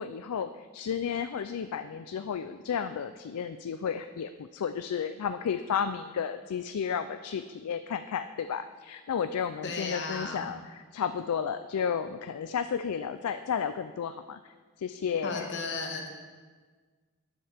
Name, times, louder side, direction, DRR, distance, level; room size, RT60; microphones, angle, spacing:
voice 1, 0.0-15.5, left 7 dB, 90° left, 10 dB, 0.4 m, -33 dB
voice 2, 9.6-10.5 15.2-16.1, left 3 dB, 50° left, 2 dB, 1.4 m, -35 dB
12.5 x 10.0 x 3.4 m, 1.5 s
head